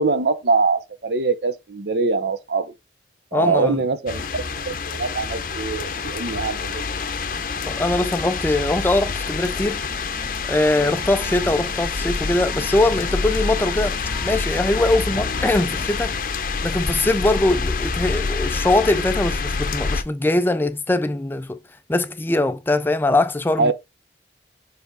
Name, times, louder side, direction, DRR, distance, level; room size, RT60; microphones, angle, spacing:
voice 1, 0.0-2.7 3.3-6.9 23.6-23.7, right 4 dB, 65° right, 0.7 m, -23 dB
voice 2, 3.3-3.8 7.7-9.8 10.5-14.0 14.2-16.1 16.6-21.6 21.9-23.7, left 2 dB, 10° left, 0.3 m, -21 dB
sound 1, 4.1-20.0, left 4 dB, 50° left, 0.6 m, -27 dB
sound 2, 9.1-17.0, right 1 dB, 20° right, 1.1 m, -40 dB
6.9 x 3.3 x 4.1 m
head